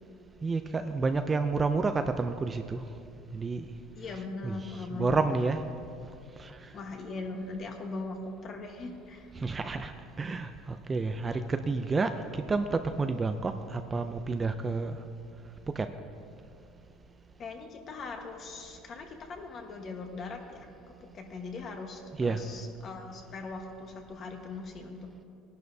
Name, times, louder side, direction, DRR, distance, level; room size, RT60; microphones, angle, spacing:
voice 1, 0.4-2.8 3.3-3.7 4.1-5.6 6.4-6.5 9.4-9.9 10.2-15.0 15.8-15.9 22.2-22.4, right 4 dB, 15° right, 7 dB, 0.4 m, -30 dB
voice 2, 3.9-5.2 6.7-9.3 17.4-25.1, left 3 dB, 35° left, 3 dB, 1.3 m, -40 dB
19.5 x 11.0 x 2.7 m, 2.6 s
cardioid pair, 150°, 0 cm